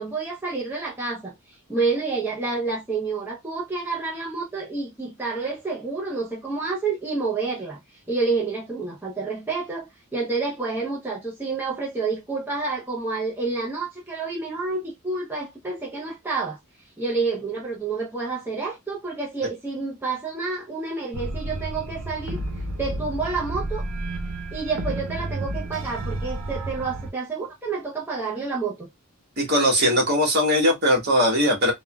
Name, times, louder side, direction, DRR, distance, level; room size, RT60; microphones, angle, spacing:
voice 1, 0.0-16.6 17.0-23.8 24.5-28.9, right 4 dB, 10° right, 0.6 m, -29 dB
sound 1, 21.1-27.1, right 1 dB, 90° right, 0.8 m, -31 dB
voice 2, 29.4-31.7, equal, 45° right, 1.2 m, -20 dB
3.5 x 2.2 x 2.2 m
head